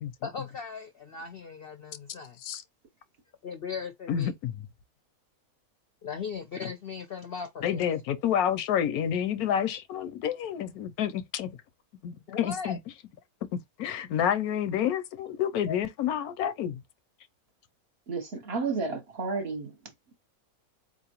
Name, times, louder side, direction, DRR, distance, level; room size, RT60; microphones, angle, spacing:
voice 1, 0.2-2.4 3.4-4.3 6.0-7.9 12.3-12.8 15.7-15.8, left 6 dB, 60° left, 0.6 m, -38 dB
voice 2, 4.1-4.5 7.6-11.5 12.0-12.8 13.5-16.7, left 9 dB, 80° left, 1.1 m, -29 dB
voice 3, 18.1-19.7, right 4 dB, 50° right, 1.0 m, -31 dB
4.3 x 2.7 x 2.9 m
omnidirectional pair, 1.6 m